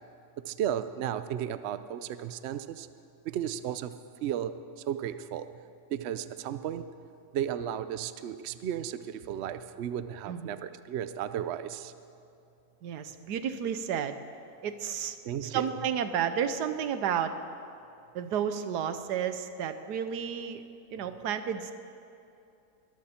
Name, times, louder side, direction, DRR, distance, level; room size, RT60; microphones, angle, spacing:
voice 1, 0.4-2.9 3.2-3.9 4.2-4.5 4.9-5.5 5.9-6.9 7.3-11.9 15.3-15.6, right 10 dB, 65° right, 12 dB, 0.7 m, -34 dB
voice 2, 12.8-14.2 14.6-15.2 15.4-17.3 18.1-20.6 20.9-21.7, right 8 dB, 90° right, 10 dB, 1.4 m, -31 dB
21.5 x 14.0 x 4.4 m, 2.7 s
omnidirectional pair, 1.7 m